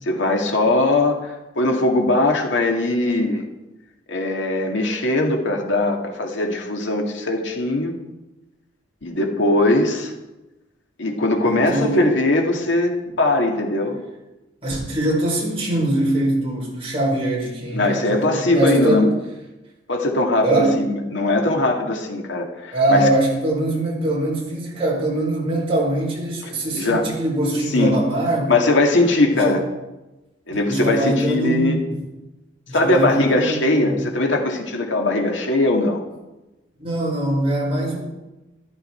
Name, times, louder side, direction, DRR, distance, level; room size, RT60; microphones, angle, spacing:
voice 1, 0.1-3.5 4.1-8.0 9.0-10.1 11.0-14.0 17.7-19.1 19.9-23.1 26.7-27.1 27.7-28.0 28.5-29.6 30.5-31.8 32.7-36.0, left 2 dB, 90° left, 2 dB, 2.1 m, -20 dB
voice 2, 11.4-12.0 14.6-19.0 20.4-20.8 22.7-28.5 29.3-29.6 30.7-32.0 32.7-34.0 36.8-38.0, right 1 dB, 30° right, -4 dB, 4.9 m, -22 dB
13.5 x 13.5 x 4.4 m, 1.0 s
head